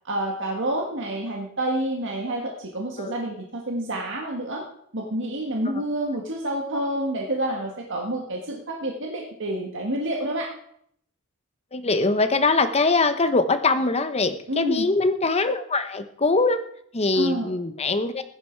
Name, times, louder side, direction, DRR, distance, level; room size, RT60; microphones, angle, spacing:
voice 1, 0.0-4.6 4.9-10.5 14.5-14.9 17.1-17.5, right 1 dB, 60° right, 1 dB, 1.8 m, -28 dB
voice 2, 11.7-16.6 16.9-18.2, left 3 dB, 30° left, 9 dB, 1.0 m, -22 dB
15.5 x 11.5 x 4.7 m, 0.68 s
head